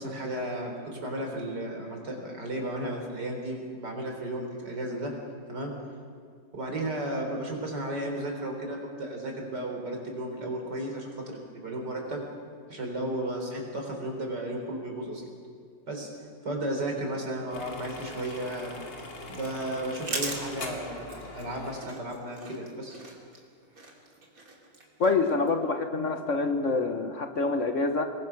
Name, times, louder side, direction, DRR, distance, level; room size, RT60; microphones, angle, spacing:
voice 1, 0.0-5.1 5.5-5.7 6.5-12.2 12.7-15.2 15.9-16.1 16.4-18.7 19.3-23.0, right 1 dB, 65° right, 2 dB, 4.7 m, -34 dB
sound 1, 17.5-21.8, left 2 dB, 85° left, 3.2 m, -42 dB
sound 2, 18.6-25.5, right 2 dB, 50° right, 3.3 m, -41 dB
voice 2, 25.0-28.1, left 3 dB, 45° left, 6 dB, 1.4 m, -26 dB
26.5 x 21.0 x 6.0 m, 2.2 s
omnidirectional pair, 1.9 m